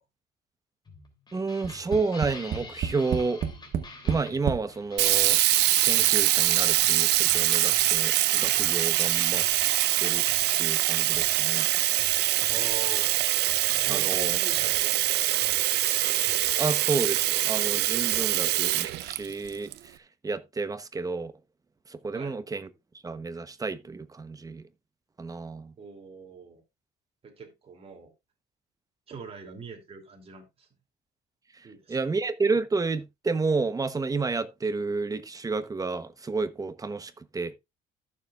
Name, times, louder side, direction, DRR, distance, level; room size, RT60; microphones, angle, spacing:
sound 1, 0.9-17.0, left 3 dB, 25° left, 3.1 m, -46 dB
voice 1, 1.3-3.4 4.0-5.4 5.8-9.4 10.0-10.2 10.6-11.7 13.9-14.4 16.6-19.7 20.2-21.3 21.9-22.7 23.0-24.6 25.2-25.7 31.9-37.5, right 4 dB, 20° right, 1.0 m, -30 dB
Tap, 1.6-4.7 5.5-5.6 5.9-6.0, right 8 dB, 55° right, 1.1 m, -30 dB
Sink (filling or washing), 5.0-19.7, right 16 dB, 85° right, 0.7 m, -24 dB
voice 2, 12.5-13.2 13.8-15.4 22.1-22.4 25.8-26.6 27.2-28.1 29.1-30.7 31.6-32.0, right 5 dB, 35° right, 2.9 m, -43 dB
14.5 x 7.1 x 2.5 m
cardioid pair, 110°, 17 cm